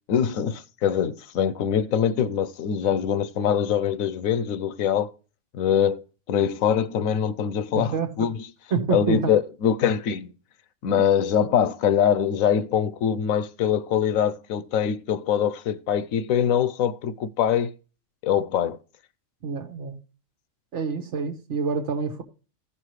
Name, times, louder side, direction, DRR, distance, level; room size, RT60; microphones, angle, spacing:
voice 1, 0.1-5.1 5.5-8.4 8.9-10.3 10.8-17.7 18.2-18.8, left 8 dB, 90° left, 1.1 m, -23 dB
voice 2, 7.7-8.3 8.7-9.3 19.4-20.0 20.7-22.2, right 5 dB, 60° right, 1.6 m, -27 dB
15.5 x 5.8 x 3.1 m
omnidirectional pair, 1.4 m